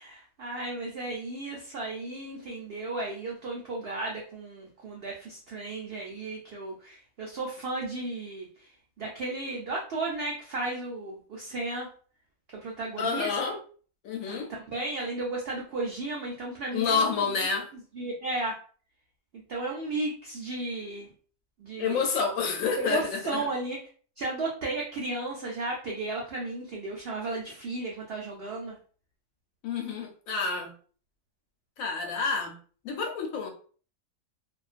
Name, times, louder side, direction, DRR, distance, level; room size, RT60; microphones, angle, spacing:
voice 1, 0.0-8.5 9.0-11.9 12.5-13.3 14.3-17.2 18.0-18.5 19.5-21.1 21.6-22.0 22.8-23.8 24.2-28.8, right 2 dB, 75° right, -2 dB, 0.5 m, -34 dB
voice 2, 13.0-13.6 14.0-14.5 16.7-17.7 21.8-23.5 29.6-30.7 31.8-32.5 32.8-33.5, left 5 dB, 70° left, 2 dB, 0.9 m, -29 dB
2.4 x 2.2 x 2.4 m, 0.42 s
omnidirectional pair, 1.6 m